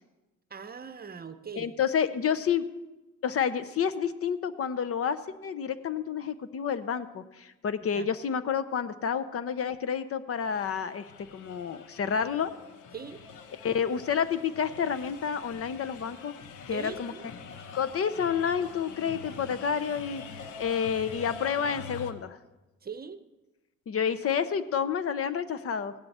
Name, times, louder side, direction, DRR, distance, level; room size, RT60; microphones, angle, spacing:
voice 1, 0.5-1.7 7.9-8.1 12.9-13.2 16.7-17.3 22.8-23.2, right 6 dB, 30° right, 10 dB, 0.7 m, -41 dB
voice 2, 1.6-2.6 3.2-11.1 11.3-12.5 13.6-16.3 16.7-17.1 17.7-20.2 20.6-22.4 23.9-25.9, left 7 dB, 50° left, 13 dB, 0.7 m, -29 dB
sound 1, 10.4-22.1, left 5 dB, 85° left, 1.0 m, -45 dB
16.0 x 11.5 x 4.3 m, 1.1 s
cardioid pair, 90°, 30 cm